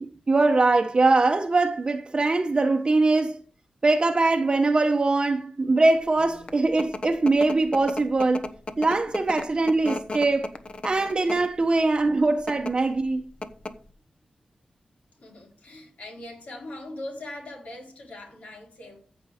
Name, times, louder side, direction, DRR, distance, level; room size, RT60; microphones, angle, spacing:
voice 1, 0.0-3.4 3.8-8.5 8.8-10.5 10.8-13.3, right 3 dB, 40° right, 0.8 m, -22 dB
sound 1, 6.2-11.6 12.3-12.7 13.1-13.2 13.4-13.9, left 3 dB, 45° left, 1.0 m, -34 dB
voice 2, 15.2-19.0, left 1 dB, 75° left, 4.2 m, -40 dB
14.5 x 5.3 x 4.9 m
wide cardioid pair, 85°, 2 cm